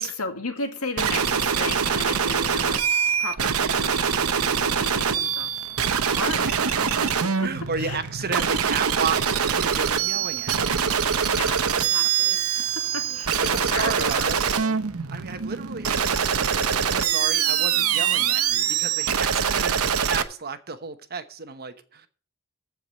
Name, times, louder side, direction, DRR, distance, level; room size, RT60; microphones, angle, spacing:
voice 1, 0.0-2.8 3.2-5.6 6.1-6.6 7.0-8.0 11.1-14.8, left 3 dB, 75° left, 5 dB, 2.0 m, -35 dB
sound 1, 1.0-20.2, right 7 dB, 70° right, 0.9 m, -24 dB
voice 2, 7.4-10.7 13.1-13.2 13.5-14.5 15.1-22.1, right 5 dB, 45° right, 9 dB, 1.0 m, -33 dB
sound 2, 9.5-12.4, right 2 dB, 5° left, 4.4 m, -48 dB
14.5 x 4.9 x 7.3 m, 0.42 s
head